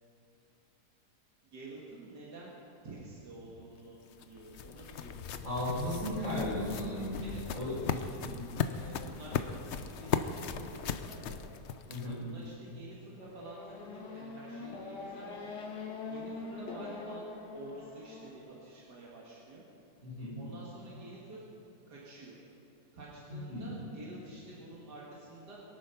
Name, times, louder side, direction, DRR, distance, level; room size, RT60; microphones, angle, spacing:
voice 1, 1.4-2.6 2.8-5.5 7.2-8.1 8.6-11.4 12.2-15.6 16.1-17.2 17.5-19.6 20.3-21.5 21.9-22.4 22.9-25.6, right 2 dB, 90° right, -5 dB, 2.5 m, -49 dB
sound 1, 3.7-12.3, left 7 dB, 60° left, 0.7 m, -37 dB
voice 2, 5.4-7.2 7.5-8.5 11.9-12.2 20.0-20.4 23.3-23.7, left 1 dB, 55° right, -5 dB, 5.1 m, -36 dB
Race car auto racing / Accelerating revving vroom, 13.2-18.4, left 3 dB, 85° left, 2.2 m, -43 dB
23.0 x 9.2 x 5.8 m, 2.9 s
omnidirectional pair, 1.7 m